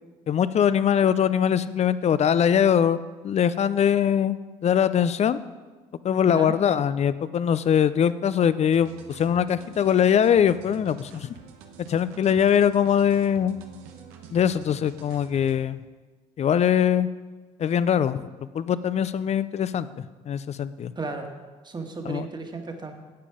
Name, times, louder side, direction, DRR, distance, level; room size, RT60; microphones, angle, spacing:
voice 1, 0.3-5.4 6.0-11.3 11.9-13.6 14.3-15.8 16.4-17.1 17.6-19.9 20.3-20.9 22.0-22.3, left 8 dB, 45° left, 15 dB, 0.6 m, -22 dB
sound 1, 8.7-15.6, right 7 dB, 85° right, 1.1 m, -47 dB
voice 2, 20.9-21.3 21.6-22.9, right 3 dB, 30° right, 4 dB, 1.8 m, -34 dB
11.5 x 8.4 x 5.0 m, 1.3 s
hypercardioid pair, 65°, 16 cm